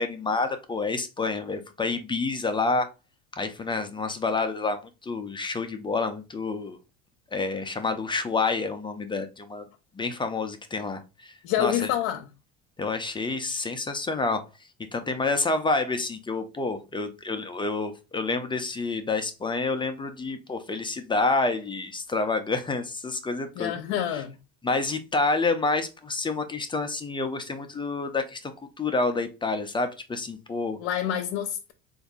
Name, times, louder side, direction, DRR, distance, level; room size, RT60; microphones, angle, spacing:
voice 1, 0.0-2.9 3.3-6.8 7.3-9.7 9.9-11.9 12.8-14.4 14.9-23.7 24.1-24.2 24.6-30.8, left 3 dB, 15° left, 0.5 m, -28 dB
voice 2, 11.4-12.3 23.6-24.4 30.8-31.7, left 11 dB, 75° left, 0.7 m, -27 dB
3.8 x 2.7 x 3.6 m
supercardioid pair, 110°, 33 cm